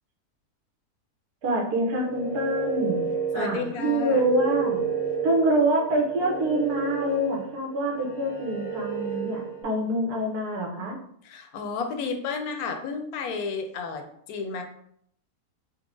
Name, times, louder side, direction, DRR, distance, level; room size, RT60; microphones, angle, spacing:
voice 1, 1.4-3.0 3.3-4.8 5.2-11.0, right 1 dB, 70° right, 0 dB, 1.3 m, -26 dB
sound 1, 1.8-9.6, right 5 dB, 45° left, 0.7 m, -31 dB
voice 2, 3.3-4.2 11.2-14.6, left 5 dB, 70° left, 5 dB, 1.1 m, -32 dB
4.5 x 2.1 x 3.6 m, 0.68 s
omnidirectional pair, 1.7 m